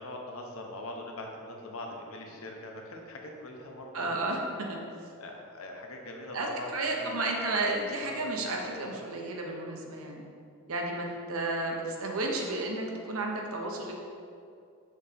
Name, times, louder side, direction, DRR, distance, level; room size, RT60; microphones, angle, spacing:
voice 1, 0.0-4.3 5.2-7.2 8.0-8.2, left 1 dB, 70° left, 1 dB, 0.8 m, -42 dB
voice 2, 3.9-4.4 4.7-4.8 6.3-10.2 10.7-13.9, right 2 dB, 75° right, 1 dB, 0.8 m, -32 dB
6.5 x 2.9 x 5.0 m, 2.4 s
head